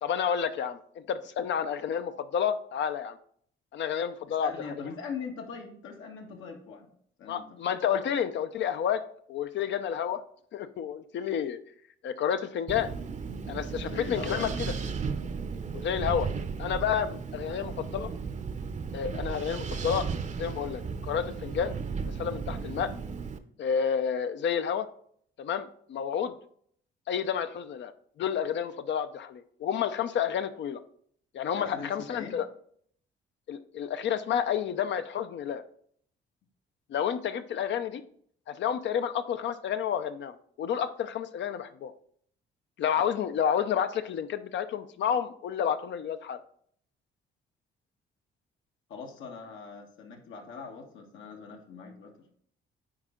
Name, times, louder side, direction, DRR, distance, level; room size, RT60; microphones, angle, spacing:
voice 1, 0.0-3.2 3.7-4.5 7.3-9.0 9.3-10.2 10.5-11.6 12.0-12.9 13.5-14.5 15.7-16.3 16.6-18.1 18.9-20.1 20.4-21.8 22.2-22.9 23.6-24.9 25.4-26.3 27.1-27.9 28.2-30.8 31.3-32.5 33.5-35.6 36.9-38.0 38.5-41.9 42.8-46.4, left 8 dB, 65° left, 10 dB, 0.6 m, -30 dB
voice 2, 4.3-6.9 7.2-7.8 13.8-14.6 17.5-17.6 31.6-32.4 48.9-52.3, left 5 dB, 80° left, 2 dB, 1.7 m, -41 dB
Wind, 12.7-23.4, right 5 dB, 35° right, 0.7 m, -35 dB
9.5 x 4.3 x 3.8 m, 0.62 s
cardioid pair, 90°, 20 cm